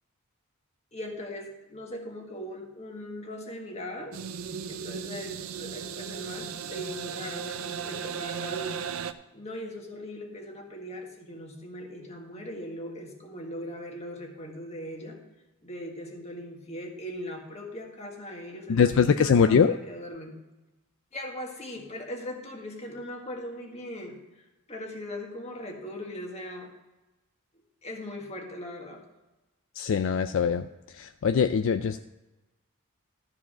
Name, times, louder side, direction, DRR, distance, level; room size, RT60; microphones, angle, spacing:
voice 1, 0.9-4.2 4.7-8.8 9.3-15.2 15.6-20.4 21.1-26.7 27.8-29.0, left 1 dB, 30° left, 1 dB, 1.7 m, -39 dB
sound 1, 4.1-9.1, right 7 dB, 70° right, 0.5 m, -36 dB
voice 2, 18.7-19.7 29.8-30.7 30.9-32.0, left 6 dB, 60° left, 10 dB, 0.3 m, -22 dB
13.0 x 4.9 x 6.1 m, 1.1 s
head